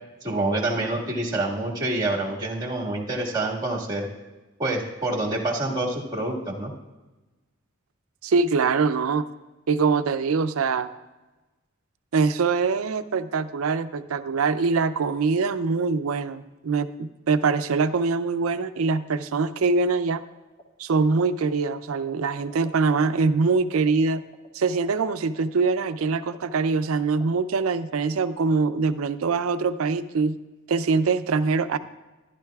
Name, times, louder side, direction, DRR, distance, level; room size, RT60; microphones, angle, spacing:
voice 1, 0.2-4.1 4.6-6.7, right 2 dB, 20° right, -2 dB, 1.8 m, -27 dB
voice 2, 8.2-9.3 9.7-10.9 12.1-20.2 20.8-24.2 24.5-30.4 30.7-31.8, right 4 dB, 90° right, 12 dB, 0.5 m, -23 dB
sound 1, 20.3-20.6 20.9-23.0 23.2-23.3 23.5-27.2 27.5-27.8, equal, 30° left, 1.5 m, -46 dB
13.5 x 11.5 x 2.3 m, 1.1 s
head